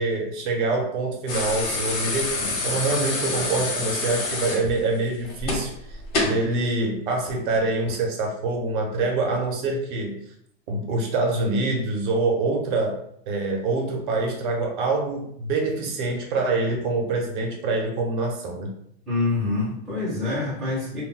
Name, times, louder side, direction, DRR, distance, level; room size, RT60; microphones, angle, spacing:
voice 1, 0.0-10.2 10.7-18.7, right 3 dB, 50° right, 1 dB, 0.7 m, -25 dB
sound 1, 1.3-6.5 7.8-8.0, left 2 dB, 65° left, 1.0 m, -27 dB
voice 2, 19.1-21.0, left 3 dB, ahead, -10 dB, 0.6 m, -26 dB
2.2 x 2.1 x 3.7 m, 0.69 s
supercardioid pair, 170°, 32 cm